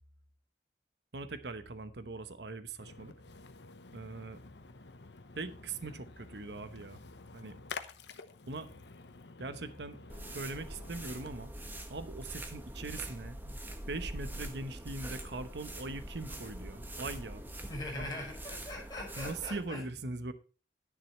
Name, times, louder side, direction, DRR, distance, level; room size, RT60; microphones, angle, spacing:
voice 1, 1.1-3.1 3.9-4.4 5.4-7.0 7.3-7.6 8.5-8.7 9.4-10.0 10.3-11.5 11.9-13.6 13.9-17.4 18.0-18.1 19.2-20.3, right 3 dB, 80° right, 1.0 m, -41 dB
Splash splatter, 2.8-11.5, left 4 dB, 85° left, 1.0 m, -50 dB
sound 1, 10.1-19.7, right 1 dB, 10° right, 1.3 m, -44 dB
voice 2, 17.7-19.8, left 1 dB, 20° left, 5.4 m, -41 dB
11.0 x 10.5 x 3.1 m
head